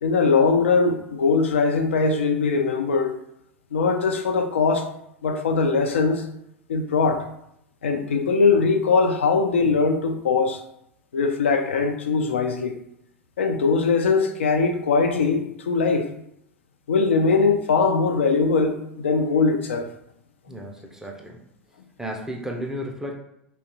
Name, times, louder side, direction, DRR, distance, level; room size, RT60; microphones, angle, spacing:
voice 1, 0.0-3.2 3.7-4.9 5.2-6.2 6.7-7.3 7.8-10.6 11.1-12.7 13.4-16.1 16.9-19.9 20.5-20.6, left 4 dB, 75° left, 5 dB, 0.3 m, -21 dB
voice 2, 20.5-21.4 22.0-23.2, equal, 5° right, 1 dB, 0.4 m, -33 dB
2.9 x 2.2 x 2.7 m, 0.77 s
figure-of-eight pair, 85°, 7 cm